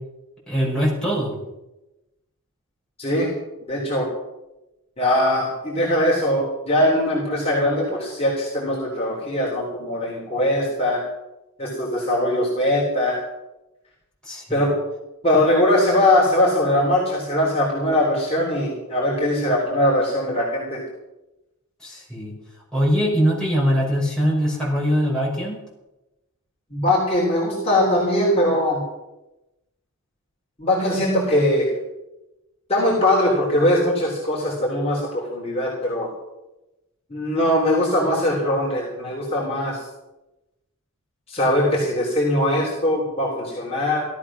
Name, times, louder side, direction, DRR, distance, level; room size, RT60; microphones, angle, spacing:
voice 1, 0.5-1.4 14.3-14.7 21.8-22.3 22.7-25.6, equal, 5° left, -5 dB, 5.9 m, -22 dB
voice 2, 3.0-3.3 3.7-4.1 5.0-11.0 11.6-13.2 14.5-14.7 15.2-20.8 26.7-28.8 30.6-31.7 32.7-36.1 37.1-39.8 41.3-44.0, left 1 dB, 25° left, -4 dB, 3.7 m, -21 dB
17.0 x 13.0 x 6.2 m, 0.98 s
head